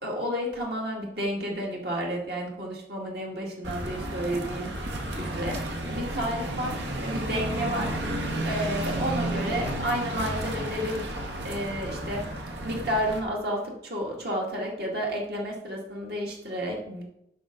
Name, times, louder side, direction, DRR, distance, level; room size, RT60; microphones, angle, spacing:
voice 1, 0.0-4.7 5.1-5.6 5.9-7.9 8.4-11.0 11.4-12.2 12.6-17.0, equal, 60° right, -1 dB, 2.0 m, -31 dB
sound 1, 3.6-13.2, right 1 dB, 85° right, 1.6 m, -32 dB
10.5 x 6.3 x 3.8 m, 0.80 s
head